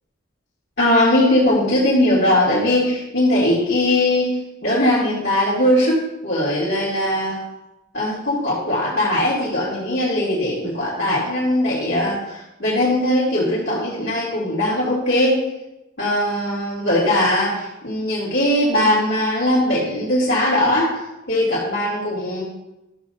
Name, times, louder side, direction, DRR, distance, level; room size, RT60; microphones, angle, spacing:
voice 1, 0.8-4.3 4.6-7.4 7.9-15.4 16.0-21.0 21.3-22.4, left 1 dB, 55° left, -9 dB, 2.6 m, -20 dB
13.0 x 7.3 x 2.7 m, 0.93 s
head